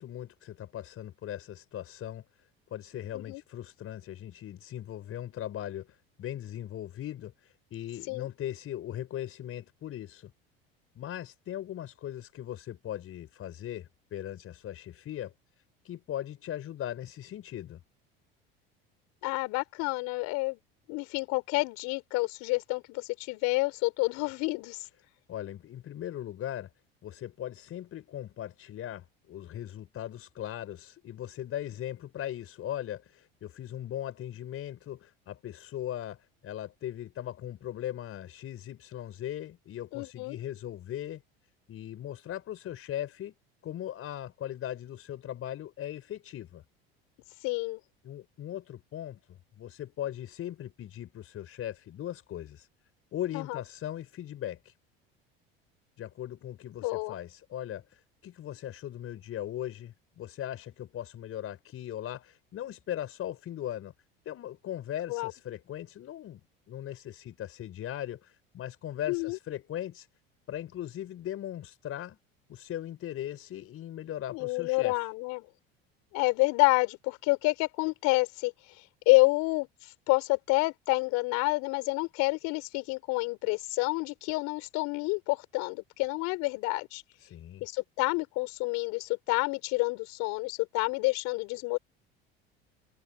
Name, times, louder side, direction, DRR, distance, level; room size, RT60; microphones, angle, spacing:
voice 1, 0.0-10.3 11.0-15.3 15.8-17.8 25.3-26.7 27.0-41.2 41.7-43.3 43.6-46.6 48.0-52.7 53.1-54.7 56.0-63.9 64.2-66.4 66.7-70.1 70.5-72.2 72.5-75.1 87.2-87.7, left 11 dB, 50° left, 5.2 m, -39 dB
voice 2, 19.2-20.6 20.9-24.8 39.9-40.4 47.4-47.8 53.3-53.6 56.8-57.2 65.1-65.3 69.1-69.4 74.3-75.4 76.1-78.5 79.1-79.7 80.1-87.0 87.6-91.8, left 25 dB, 65° left, 4.0 m, -28 dB
hypercardioid pair, 75°, 30 cm